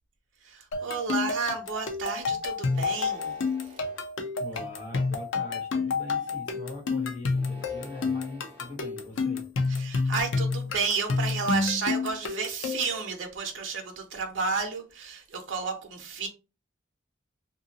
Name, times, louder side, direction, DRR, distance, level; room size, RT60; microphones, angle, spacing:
voice 1, 0.4-3.5 9.7-16.3, right 5 dB, 80° right, 0.6 m, -32 dB
sound 1, 0.7-13.0, left 4 dB, 85° left, 0.5 m, -29 dB
sound 2, 2.6-4.1 4.8-5.3 7.3-8.8, right 1 dB, 30° right, 0.6 m, -49 dB
voice 2, 4.4-9.4, left 2 dB, 40° left, 1.1 m, -41 dB
2.6 x 2.6 x 2.7 m
head